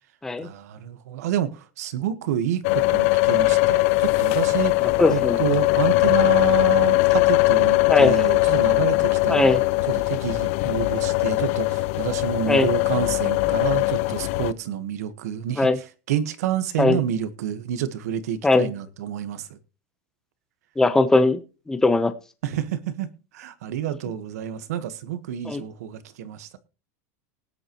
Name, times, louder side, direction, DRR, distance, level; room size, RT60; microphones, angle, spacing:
voice 1, 0.4-19.6 22.4-26.6, right 10 dB, 80° right, 12 dB, 1.5 m, -29 dB
sound 1, 2.6-14.5, left 20 dB, 55° left, 0.6 m, -20 dB
voice 2, 5.0-5.4 7.9-8.1 9.3-9.6 12.5-12.7 15.6-15.8 16.8-17.0 18.4-18.7 20.8-21.4 21.7-22.1 25.5-25.6, left 3 dB, 5° left, 10 dB, 0.9 m, -19 dB
19.0 x 9.9 x 3.1 m, 0.34 s
supercardioid pair, 160°, 8 cm